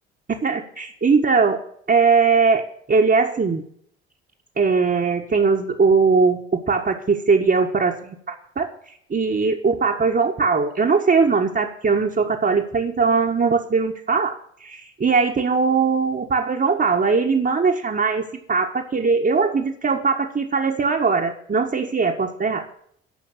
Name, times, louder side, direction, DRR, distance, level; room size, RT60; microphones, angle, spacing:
voice 1, 0.4-1.6 1.9-3.6 4.6-8.7 9.1-22.6, right 4 dB, 30° right, -2 dB, 1.7 m, -20 dB
14.0 x 5.7 x 9.2 m, 0.65 s
hypercardioid pair, 50°, 32 cm